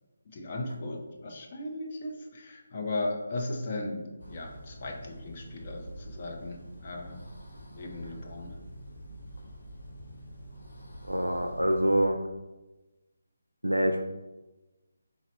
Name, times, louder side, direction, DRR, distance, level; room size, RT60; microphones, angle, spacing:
voice 1, 0.2-7.2 7.7-8.6, left 2 dB, 35° left, 1 dB, 0.7 m, -37 dB
sound 1, 4.2-12.0, equal, 60° left, 1.0 m, -46 dB
voice 2, 11.0-12.2 13.6-14.0, equal, 90° right, 5 dB, 0.4 m, -25 dB
4.1 x 2.9 x 3.9 m, 1.1 s
figure-of-eight pair, 150°, 0 cm